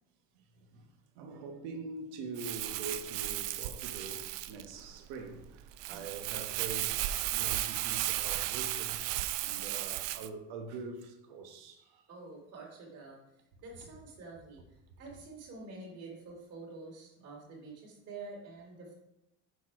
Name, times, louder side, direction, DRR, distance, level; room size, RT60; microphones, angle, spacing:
voice 1, 0.3-9.0 9.4-12.1, right 3 dB, 90° right, 1.3 m, -44 dB
Crumpling crinkling, 2.4-10.3, right 15 dB, 65° right, 0.5 m, -35 dB
voice 2, 12.1-13.2 13.6-14.6 15.0-18.9, right 3 dB, 50° right, 2.8 m, -47 dB
7.1 x 4.5 x 4.6 m
cardioid pair, 145°, 33 cm